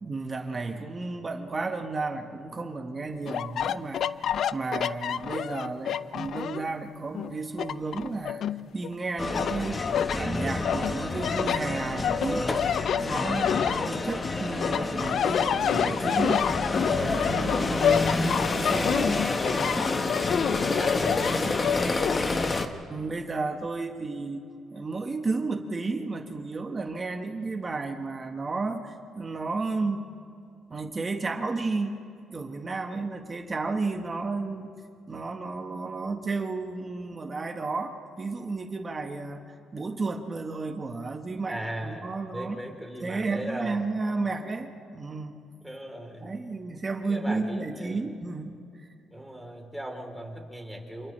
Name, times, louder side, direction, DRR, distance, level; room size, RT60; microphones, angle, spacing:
voice 1, 0.0-4.0 4.5-8.4 8.7-9.9 10.1-12.5 13.0-16.5 16.8-19.2 19.6-20.0 22.9-24.4 24.7-30.0 30.7-31.9 32.3-34.7 35.1-42.6 43.0-45.4 46.2-48.9, right 3 dB, 30° right, 5 dB, 1.5 m, -32 dB
sound 1, 3.3-6.7 7.1-8.9 9.3-10.2 10.6-14.3 14.6-22.2, left 9 dB, 65° left, 0.4 m, -28 dB
sound 2, 9.2-22.7, left 2 dB, 30° left, 1.4 m, -29 dB
voice 2, 20.6-21.9 41.5-43.8 45.6-46.3 47.1-48.0 49.1-51.1, right 1 dB, ahead, 1 dB, 3.7 m, -38 dB
29.0 x 27.5 x 3.4 m, 2.4 s
cardioid pair, 90°, 0 cm